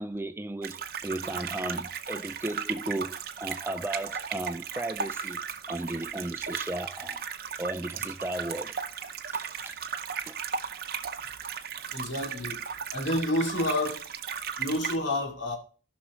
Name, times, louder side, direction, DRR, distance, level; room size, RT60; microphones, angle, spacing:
voice 1, 0.0-5.4 5.7-7.3 7.6-8.7 9.3-9.8 10.3-10.4, right 1 dB, 10° right, 0.4 m, -35 dB
sound 1, 0.6-15.0, right 6 dB, 50° right, 0.7 m, -36 dB
voice 2, 11.9-12.6 12.9-14.0 14.6-15.6, left 1 dB, 70° left, 2.7 m, -29 dB
16.5 x 6.2 x 3.1 m
head